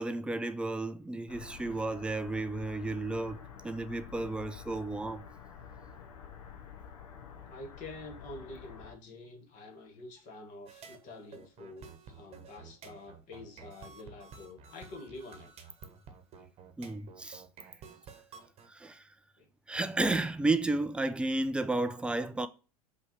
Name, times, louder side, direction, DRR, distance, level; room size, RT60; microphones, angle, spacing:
voice 1, 0.0-5.3 16.8-17.4 18.7-19.1 19.7-22.5, right 2 dB, 5° right, 0.4 m, -32 dB
sound 1, 1.3-8.9, left 7 dB, 65° left, 1.0 m, -49 dB
voice 2, 7.5-15.5 19.4-19.5, left 2 dB, 40° left, 1.7 m, -47 dB
sound 2, 10.7-18.7, right 6 dB, 30° right, 1.1 m, -52 dB
5.4 x 3.3 x 5.4 m
figure-of-eight pair, 80°, 19 cm